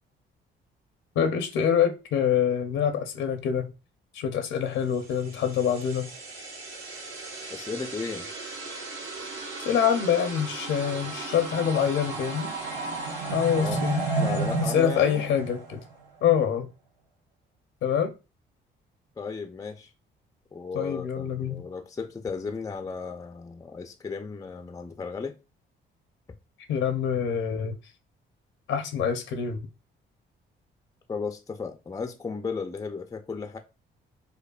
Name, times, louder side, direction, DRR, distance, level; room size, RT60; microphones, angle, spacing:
voice 1, 1.2-3.7 4.1-6.1 9.6-12.5 13.3-14.0 14.7-15.8 16.2-16.7 17.8-18.1 20.7-21.6 26.7-27.8 28.7-29.6, left 8 dB, 80° left, 0.6 m, -25 dB
sound 1, 5.3-16.0, right 3 dB, 80° right, 1.5 m, -33 dB
voice 2, 7.5-8.3 13.6-13.8 14.2-15.2 19.2-19.9 20.5-25.3 31.1-33.6, left 4 dB, 15° left, 0.4 m, -35 dB
5.3 x 2.1 x 2.3 m
cardioid pair, 90°, 20 cm